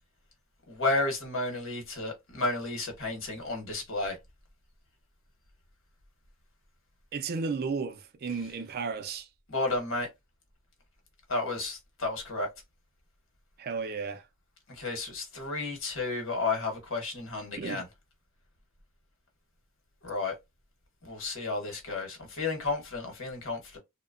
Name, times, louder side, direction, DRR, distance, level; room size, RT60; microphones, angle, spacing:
voice 1, 0.7-4.2 8.3-8.4 9.5-10.1 11.3-12.5 14.8-17.9 20.0-20.3 21.0-23.8, left 3 dB, 60° left, 1.0 m, -32 dB
voice 2, 7.1-9.3 13.6-14.2 17.5-17.8, right 5 dB, 45° right, 0.4 m, -33 dB
2.8 x 2.1 x 2.4 m
head